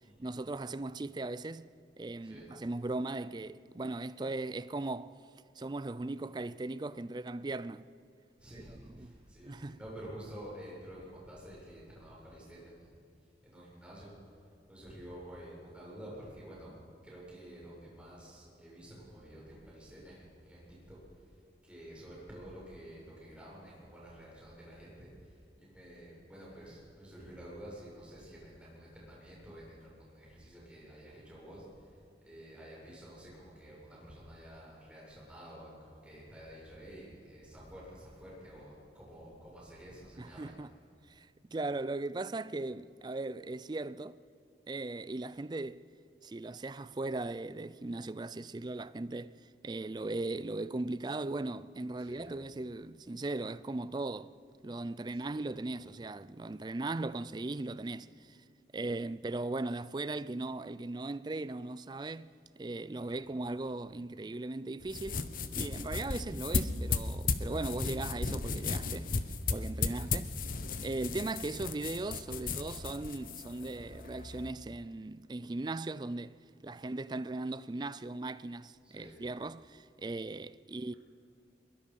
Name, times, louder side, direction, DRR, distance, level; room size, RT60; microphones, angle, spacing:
voice 1, 0.2-5.2 5.6-7.9 8.5-9.1 9.4-9.8 40.2-40.7 41.1-44.2 44.7-45.8 46.2-49.3 49.6-54.3 54.6-58.4 58.7-65.3 65.5-69.2 69.5-70.3 70.8-76.4 76.6-80.9, right 2 dB, 25° right, 0.4 m, -38 dB
voice 2, 8.4-13.0 13.4-14.1 14.7-16.8 17.0-31.9 32.2-40.5 45.2-45.3 52.0-52.3 55.2-55.4 62.0-62.1 63.0-63.2 69.8-70.0 78.8-79.3, equal, 5° right, 7.2 m, -50 dB
sound 1, 64.8-74.5, left 4 dB, 50° left, 1.0 m, -35 dB
22.5 x 22.0 x 5.4 m
head